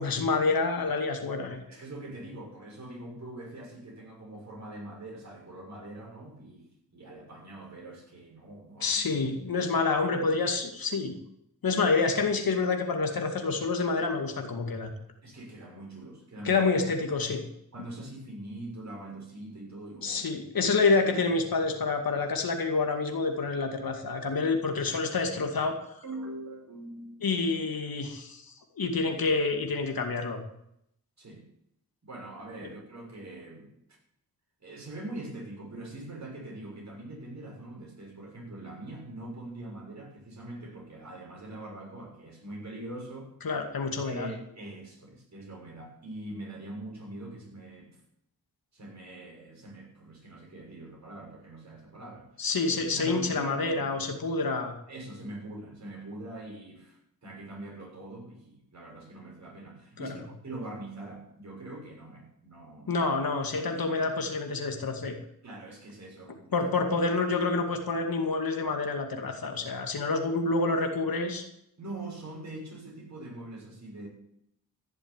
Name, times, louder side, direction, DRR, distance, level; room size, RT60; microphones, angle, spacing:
voice 1, 0.0-1.6 8.8-11.2 11.6-14.9 16.4-17.4 20.0-25.8 27.2-30.4 43.4-44.3 52.4-54.7 60.0-60.1 62.9-65.2 66.5-71.4, left 3 dB, 65° left, 4 dB, 2.3 m, -28 dB
voice 2, 1.7-9.2 15.2-16.6 17.7-20.3 20.6-20.7 26.0-27.1 31.2-31.5 32.0-34.0 34.6-43.3 44.0-47.9 48.7-52.3 52.9-53.9 54.9-63.0 65.4-66.5 71.8-74.1, right 1 dB, 45° right, -1 dB, 6.7 m, -43 dB
15.0 x 7.3 x 9.0 m, 0.77 s
cardioid pair, 70°, 38 cm